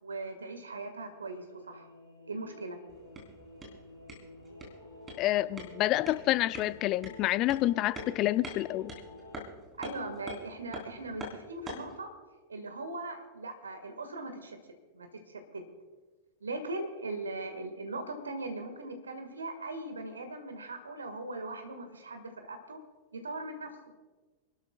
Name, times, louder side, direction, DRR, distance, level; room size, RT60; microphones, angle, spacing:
voice 1, 0.0-1.9 2.3-2.8 9.8-12.1 12.5-14.6 14.9-15.6 16.4-22.8 23.1-23.7, right 2 dB, 75° right, 7 dB, 1.7 m, -39 dB
sound 1, 1.0-9.4, left 2 dB, 85° left, 3.8 m, -50 dB
sound 2, 2.9-12.0, right 1 dB, 15° right, 3.6 m, -46 dB
voice 2, 5.2-8.9, left 15 dB, 40° left, 17 dB, 0.4 m, -28 dB
29.5 x 12.0 x 2.4 m, 1.3 s
figure-of-eight pair, 90°, 0 cm